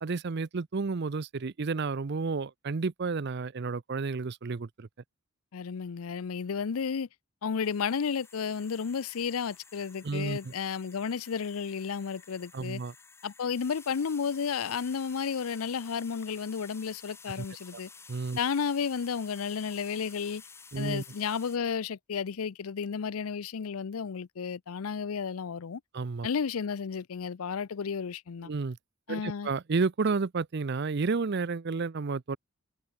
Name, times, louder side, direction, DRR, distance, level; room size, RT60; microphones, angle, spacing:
voice 1, 0.0-4.9 10.0-10.5 12.5-12.9 17.4-17.5 18.1-18.4 20.7-21.0 25.9-26.3 28.4-28.8 29.1-32.4, right 4 dB, 50° right, 0.6 m, -31 dB
voice 2, 5.5-7.1 7.4-12.8 13.2-17.9 18.4-20.4 20.8-25.8 26.2-28.5 29.1-29.5, left 6 dB, 85° left, 0.5 m, -32 dB
sound 1, 7.6-21.6, left 5 dB, 10° left, 0.5 m, -52 dB
head